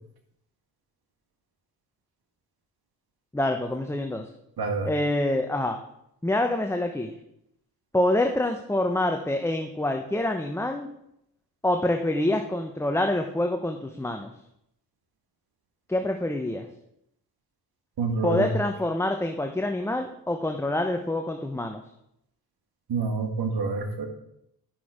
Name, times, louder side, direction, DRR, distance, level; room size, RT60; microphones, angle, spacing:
voice 1, 3.3-4.3 4.8-5.8 6.2-7.1 7.9-10.9 11.6-14.3 15.9-16.7 18.2-21.8, left 1 dB, 5° left, 4 dB, 0.8 m, -26 dB
voice 2, 4.6-4.9 18.0-18.5 22.9-24.1, right 4 dB, 70° right, 4 dB, 2.0 m, -27 dB
10.5 x 5.9 x 5.0 m, 0.77 s
cardioid pair, 65°, 38 cm